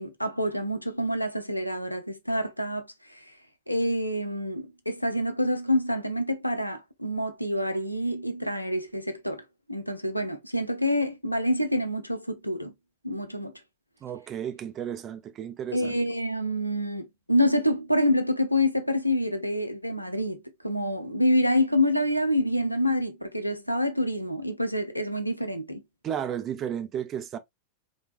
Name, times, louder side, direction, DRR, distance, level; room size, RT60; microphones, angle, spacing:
voice 1, 0.0-2.9 3.7-9.4 9.7-12.7 13.0-13.5 15.7-20.4 20.6-25.8, left 1 dB, 90° left, 0.6 m, -27 dB
voice 2, 14.0-16.0 26.0-27.4, right 9 dB, 30° right, 0.6 m, -33 dB
4.5 x 2.4 x 2.5 m
figure-of-eight pair, 90°, 0 cm